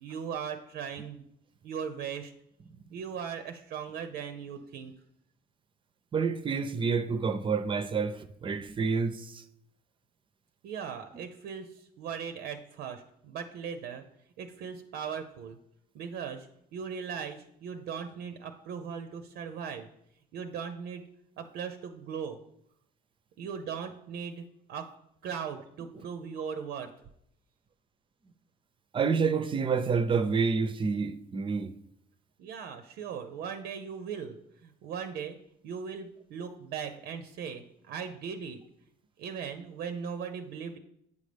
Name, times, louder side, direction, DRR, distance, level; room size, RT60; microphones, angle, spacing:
voice 1, 0.0-1.2 1.6-2.3 2.9-4.9 10.6-14.0 14.4-15.6 15.9-16.5 16.7-19.9 20.3-21.0 21.4-22.4 23.4-24.9 25.2-26.9 32.4-35.4 35.6-38.6 39.2-40.8, right 7 dB, 80° right, 0.6 m, -38 dB
voice 2, 6.1-9.4 28.9-31.7, right 5 dB, 30° right, 0.5 m, -28 dB
8.3 x 5.3 x 3.4 m
cardioid pair, 110°, 17 cm